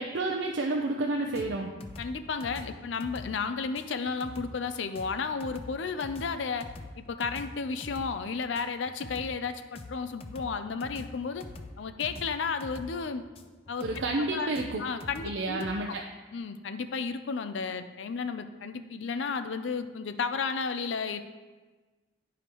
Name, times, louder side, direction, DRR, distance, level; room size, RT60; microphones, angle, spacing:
voice 1, 0.0-1.7 13.8-14.8 15.2-16.0, right 2 dB, 85° right, 0 dB, 0.6 m, -30 dB
sound 1, 1.3-15.8, left 2 dB, 30° left, 0.4 m, -45 dB
voice 2, 2.0-6.7 7.0-11.5 11.8-13.2 13.7-13.9 14.2-14.5 14.8-16.0 16.3-21.2, left 5 dB, 85° left, 10 dB, 0.5 m, -33 dB
10.5 x 4.9 x 3.0 m, 1.3 s
head